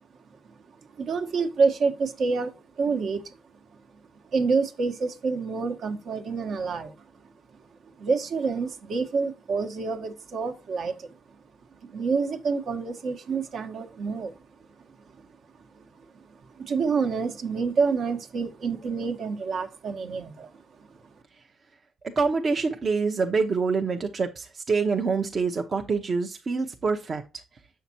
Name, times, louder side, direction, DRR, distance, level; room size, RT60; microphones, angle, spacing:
voice 1, 0.9-3.2 4.3-7.0 8.0-11.1 11.8-14.3 15.7-15.8 16.1-20.5, right 4 dB, 65° right, 1.2 m, -27 dB
voice 2, 22.2-27.2, right 4 dB, 40° right, 0.8 m, -26 dB
7.3 x 5.7 x 2.7 m
cardioid pair, 90°, 0 cm